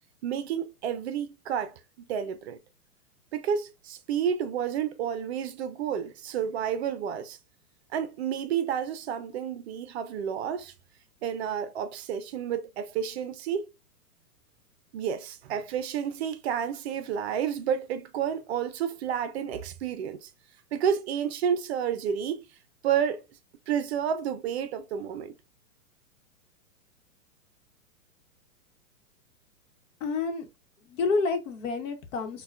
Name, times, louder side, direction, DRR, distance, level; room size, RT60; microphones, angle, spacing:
voice 1, 0.2-2.6 3.3-7.4 7.9-10.7 11.2-13.7 14.9-20.3 20.7-22.5 22.8-23.2 23.7-25.3, right 8 dB, 50° right, 0.5 m, -30 dB
voice 2, 30.0-30.5 30.9-32.4, left 4 dB, 60° left, 1.0 m, -29 dB
5.4 x 2.2 x 2.4 m
hypercardioid pair, 130°, 43 cm